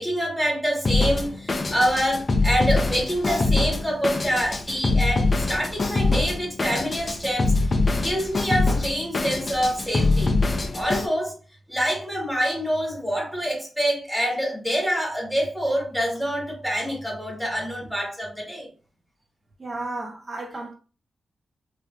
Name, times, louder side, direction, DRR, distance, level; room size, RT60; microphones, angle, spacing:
voice 1, 0.0-7.5 7.9-10.3 10.7-11.3 11.7-18.7, equal, 5° right, 1.4 m, -26 dB
Drum kit, 0.8-11.1, left 3 dB, 35° left, 0.4 m, -24 dB
voice 2, 19.6-20.7, right 2 dB, 30° right, 0.7 m, -33 dB
3.3 x 2.6 x 2.3 m
wide cardioid pair, 100°, 0 cm